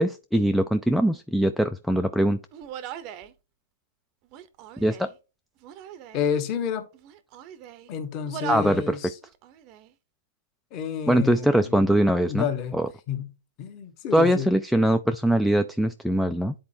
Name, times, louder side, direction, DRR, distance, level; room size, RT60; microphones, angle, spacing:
voice 1, 0.0-2.4 4.8-5.1 8.5-9.0 11.1-12.5 12.7-12.9 14.1-16.5, right 1 dB, ahead, 0.3 m, -22 dB
Human voice, 2.5-3.3 4.2-5.2 5.6-6.3 6.9-7.9 8.3-8.9 9.2-9.9, right 10 dB, 30° right, 0.7 m, -40 dB
voice 2, 6.1-6.8 7.9-9.2 10.7-11.9 12.3-12.8 13.1-13.3 13.6-14.5, left 8 dB, 30° left, 1.3 m, -30 dB
10.5 x 4.3 x 2.7 m
hypercardioid pair, 160°, 0 cm